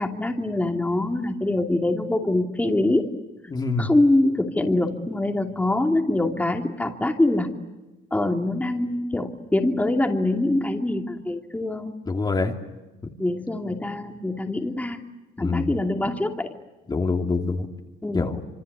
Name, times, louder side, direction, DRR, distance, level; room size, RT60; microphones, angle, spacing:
voice 1, 0.0-3.0 3.8-7.5 8.1-11.9 13.2-15.0 15.4-16.5 18.0-18.3, left 2 dB, 10° left, 3 dB, 2.7 m, -24 dB
voice 2, 3.5-3.9 12.1-12.5 15.4-15.7 16.9-17.7 18.1-18.4, left 3 dB, 25° left, 2 dB, 2.6 m, -25 dB
27.0 x 25.5 x 8.3 m, 1.1 s
cardioid pair, 110°, 17 cm